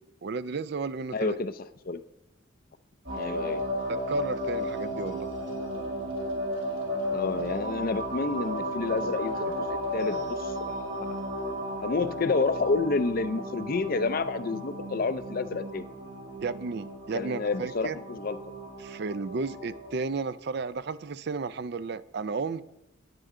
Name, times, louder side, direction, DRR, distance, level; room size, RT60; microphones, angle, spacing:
voice 1, 0.2-1.4 3.9-5.3 16.4-18.0 18.8-22.6, right 4 dB, 55° right, 0.4 m, -33 dB
voice 2, 1.1-2.0 3.1-3.6 7.1-11.2 11.8-15.8 17.1-18.4, left 3 dB, 45° left, 0.5 m, -29 dB
sound 1, 3.1-19.9, equal, 90° right, 3.5 m, -34 dB
14.5 x 10.0 x 3.7 m
head